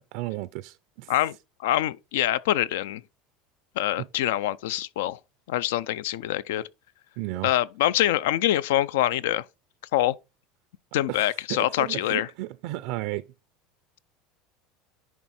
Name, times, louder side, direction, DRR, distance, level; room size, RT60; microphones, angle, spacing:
voice 1, 0.1-1.1 4.0-4.1 7.2-7.5 11.1-13.2, right 18 dB, 70° right, 0.4 m, -34 dB
voice 2, 1.6-3.0 3.8-5.2 5.5-6.6 7.4-9.4 9.9-10.1 10.9-12.3, left 13 dB, 90° left, 0.4 m, -25 dB
10.0 x 3.5 x 4.2 m
supercardioid pair, 135°, 0 cm